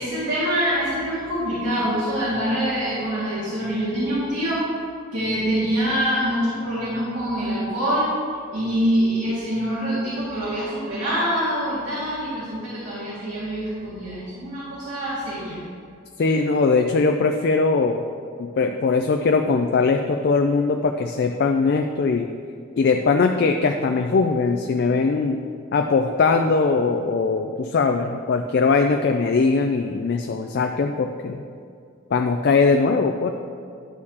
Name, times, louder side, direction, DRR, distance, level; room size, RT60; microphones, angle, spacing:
voice 1, 0.0-4.6 5.1-8.1 8.5-15.6, equal, 70° right, -10 dB, 2.0 m, -25 dB
voice 2, 16.2-18.0 18.4-22.3 22.8-25.4 25.7-31.4 32.1-33.3, left 4 dB, 50° left, 5 dB, 0.3 m, -20 dB
11.5 x 6.5 x 2.8 m, 2.3 s
head